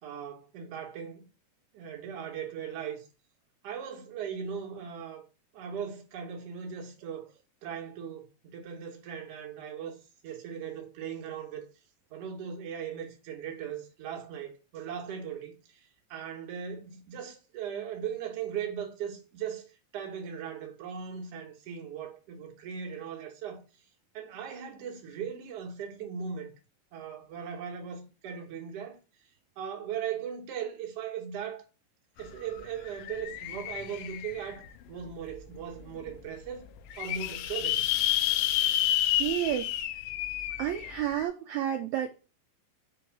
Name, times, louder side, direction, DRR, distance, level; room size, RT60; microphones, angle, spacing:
voice 1, 0.0-1.3 1.7-3.1 3.6-5.2 5.5-7.2 7.6-10.0 10.2-11.6 12.1-23.6 24.1-26.5 26.9-29.0 29.6-31.6 32.2-36.7 37.0-37.9, right 8 dB, 60° right, 1.9 m, -38 dB
sound 1, 32.2-32.3 32.6-34.7 35.3-35.4 35.8-35.9 36.0-36.1 36.7-41.3, left 13 dB, 90° left, 2.3 m, -30 dB
voice 2, 39.2-39.7 40.6-42.1, right 11 dB, 85° right, 1.6 m, -30 dB
6.0 x 3.1 x 5.8 m
omnidirectional pair, 3.9 m